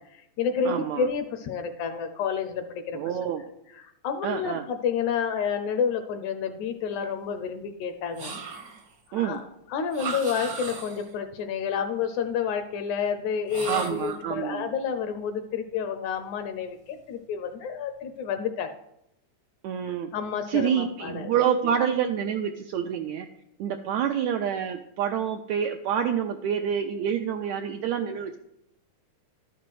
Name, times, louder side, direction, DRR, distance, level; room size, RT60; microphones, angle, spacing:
voice 1, 0.0-3.0 3.4-3.5 3.7-8.3 9.1-9.4 9.7-18.8 20.1-21.3, left 6 dB, 75° left, 8 dB, 1.8 m, -30 dB
voice 2, 0.7-1.1 2.9-3.4 4.2-4.7 9.1-9.4 13.7-14.7 19.6-20.1 20.5-23.3 23.6-28.4, right 8 dB, 85° right, 4 dB, 1.6 m, -27 dB
sound 1, 8.1-8.9 9.9-11.1 13.5-14.2, right 5 dB, 50° right, 1.1 m, -36 dB
12.5 x 6.0 x 4.7 m, 0.81 s
omnidirectional pair, 3.8 m